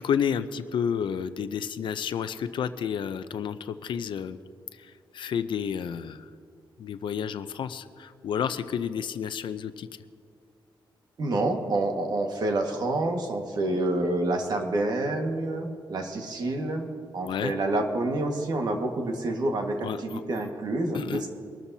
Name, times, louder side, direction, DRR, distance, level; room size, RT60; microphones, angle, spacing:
voice 1, 0.0-4.4 5.1-6.2 6.8-9.9 17.3-17.6 19.8-20.2 20.9-21.2, left 7 dB, 65° left, 11 dB, 0.6 m, -30 dB
voice 2, 11.2-16.9 17.1-21.3, right 2 dB, 50° right, 3 dB, 1.7 m, -28 dB
24.0 x 13.0 x 2.8 m, 2.3 s
wide cardioid pair, 140°, 9 cm